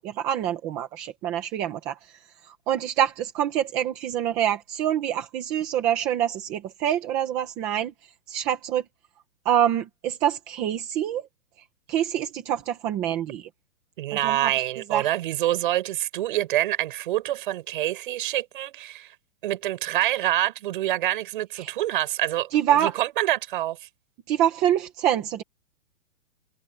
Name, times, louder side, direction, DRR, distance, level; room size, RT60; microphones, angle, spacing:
voice 1, 0.0-2.0 2.5-7.9 8.3-8.8 9.4-11.3 11.9-13.5 14.2-14.5 14.9-15.1 21.6-21.7 22.5-23.0 24.3-25.4, right 10 dB, 5° right, 0.6 m, -25 dB
voice 2, 14.0-19.1 19.4-23.9, right 14 dB, 40° right, 7.3 m, -26 dB
hypercardioid pair, 170°, 41 cm